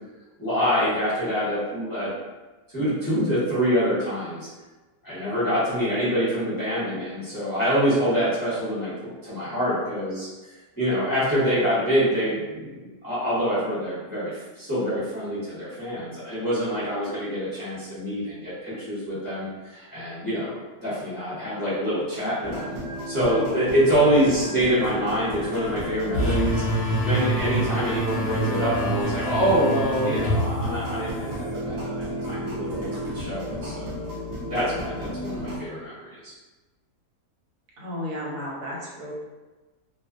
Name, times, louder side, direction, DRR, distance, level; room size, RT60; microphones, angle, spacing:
voice 1, 0.4-2.1 2.7-4.5 5.0-8.9 9.2-10.3 10.8-22.7 23.1-33.9 34.5-36.3, equal, 20° left, -12 dB, 0.7 m, -25 dB
sound 1, 22.4-35.6, equal, 55° right, 0.7 m, -33 dB
sound 2, 26.1-31.5, right 1 dB, 50° left, 0.8 m, -27 dB
voice 2, 37.8-39.1, left 1 dB, 75° right, -4 dB, 1.2 m, -33 dB
2.5 x 2.4 x 2.4 m, 1.2 s
omnidirectional pair, 1.6 m